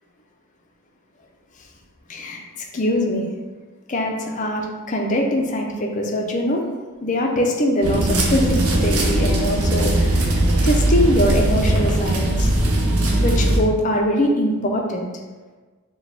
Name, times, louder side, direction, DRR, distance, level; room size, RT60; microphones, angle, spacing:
voice 1, 2.1-2.4 2.7-3.2 3.9-6.6 7.0-10.3 10.6-12.5 13.2-15.1, equal, 35° left, 1 dB, 0.5 m, -22 dB
sound 1, 7.8-13.6, right 1 dB, 75° right, 0.6 m, -19 dB
4.8 x 2.2 x 3.3 m, 1.3 s
head